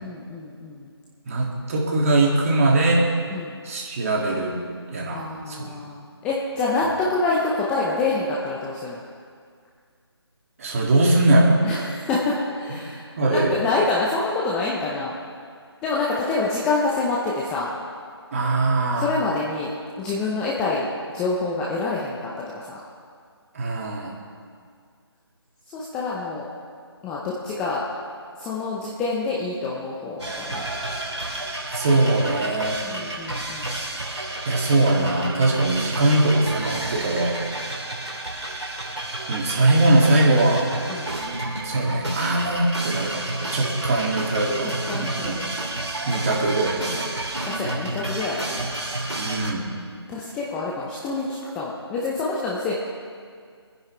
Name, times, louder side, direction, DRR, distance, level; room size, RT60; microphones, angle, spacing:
voice 1, 0.0-0.9 3.3-3.6 5.1-9.0 11.6-15.1 15.8-17.7 19.0-19.7 20.0-22.3 22.6-22.8 25.7-26.5 27.0-27.8 28.4-30.7 32.8-33.8 40.9-41.2 44.9-45.5 47.4-48.8 50.1-52.7, left 3 dB, 5° left, -5 dB, 0.6 m, -27 dB
voice 2, 1.3-3.1 3.6-4.5 4.9-5.7 10.6-11.6 13.2-13.6 18.3-19.1 23.5-24.1 31.7-32.8 34.5-37.4 39.3-40.7 41.6-45.4 46.1-47.1 49.1-49.7, right 2 dB, 30° right, -3 dB, 2.5 m, -21 dB
sound 1, 30.2-49.5, right 2 dB, 80° right, 3.0 m, -30 dB
25.5 x 10.0 x 3.4 m, 2.1 s
figure-of-eight pair, 160°, 14 cm